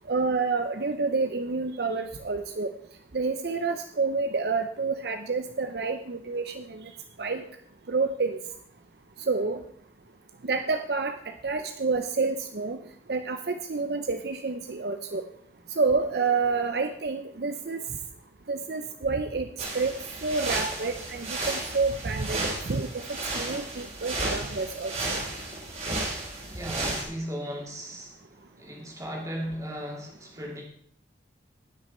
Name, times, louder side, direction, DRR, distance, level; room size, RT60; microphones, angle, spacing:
voice 1, 0.1-2.7 3.1-6.9 7.2-7.4 7.9-8.4 9.3-9.6 10.4-11.2 11.4-12.8 13.1-15.2 15.8-17.8 18.5-19.5 19.7-19.9 20.2-23.0 23.3-24.9, right 4 dB, 60° right, 0.6 m, -28 dB
sound 1, 19.6-27.0, right 2 dB, 40° right, 2.9 m, -33 dB
voice 2, 26.5-28.2 28.6-30.6, equal, 15° right, 2.4 m, -36 dB
18.0 x 6.3 x 4.3 m
head